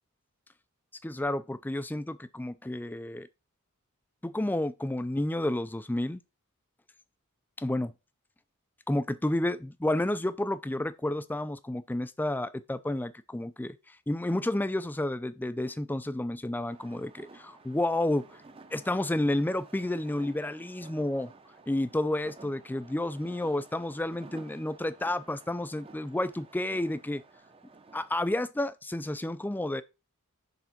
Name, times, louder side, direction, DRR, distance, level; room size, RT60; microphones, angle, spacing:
voice 1, 1.0-3.3 4.2-6.2 7.6-7.9 8.9-18.3 18.7-21.3 21.7-27.2 27.9-29.8, left 1 dB, 10° left, 0.4 m, -31 dB
sound 1, 16.7-28.1, right 3 dB, 25° right, 0.7 m, -53 dB
6.7 x 3.7 x 5.8 m
head